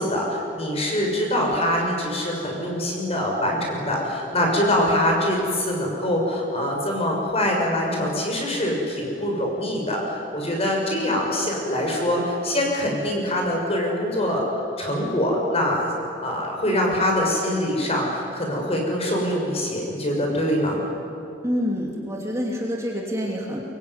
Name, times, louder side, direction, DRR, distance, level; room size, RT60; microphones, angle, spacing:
voice 1, 0.0-14.5 14.8-15.9 16.2-20.8, left 1 dB, 35° left, 0 dB, 6.3 m, -24 dB
voice 2, 21.4-23.6, equal, 15° right, -2 dB, 2.8 m, -27 dB
24.0 x 23.0 x 9.7 m, 2.7 s
head